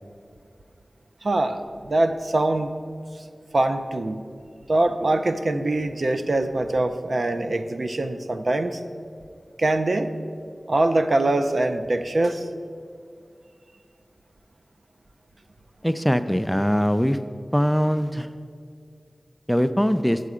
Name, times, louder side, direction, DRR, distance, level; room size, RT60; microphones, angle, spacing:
voice 1, 1.2-2.7 3.5-4.2 4.7-8.8 9.6-10.1 10.7-12.5, right 2 dB, 65° right, 7 dB, 0.5 m, -23 dB
voice 2, 15.8-17.2 17.5-18.3 19.5-20.2, equal, 5° left, 11 dB, 0.3 m, -21 dB
8.1 x 7.5 x 4.9 m, 2.3 s
wide cardioid pair, 75°, 0 cm